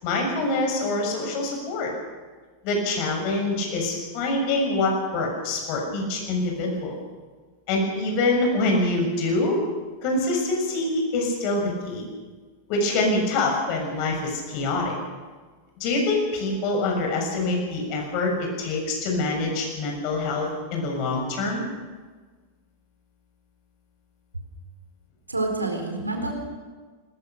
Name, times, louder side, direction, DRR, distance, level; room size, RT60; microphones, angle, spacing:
voice 1, 0.0-1.9 2.6-7.0 7.7-9.6 10.0-12.1 12.7-14.9 15.8-21.6, left 2 dB, 45° left, 1 dB, 6.8 m, -25 dB
voice 2, 25.3-26.3, right 2 dB, 80° right, 3 dB, 4.1 m, -28 dB
20.5 x 20.0 x 6.9 m, 1.4 s
figure-of-eight pair, 90°, 0 cm